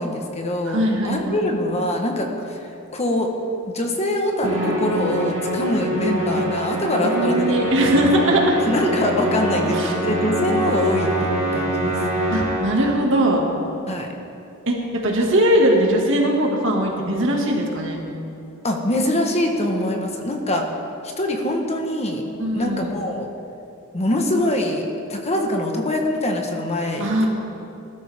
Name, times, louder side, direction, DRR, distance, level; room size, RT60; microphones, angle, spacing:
voice 1, 0.0-3.3 3.7-7.4 7.7-7.8 8.6-12.0 13.9-14.1 18.6-20.7 21.0-22.2 22.5-23.3 23.9-27.3, left 1 dB, 30° left, 2 dB, 1.3 m, -24 dB
voice 2, 0.7-1.4 6.9-8.6 9.7-9.9 12.3-13.4 14.7-18.0 22.4-22.9 27.0-27.3, right 1 dB, 60° right, 0 dB, 2.2 m, -20 dB
Musical instrument, 4.4-12.9, right 1 dB, 35° right, 3.1 m, -24 dB
20.0 x 12.5 x 3.6 m, 2.7 s
head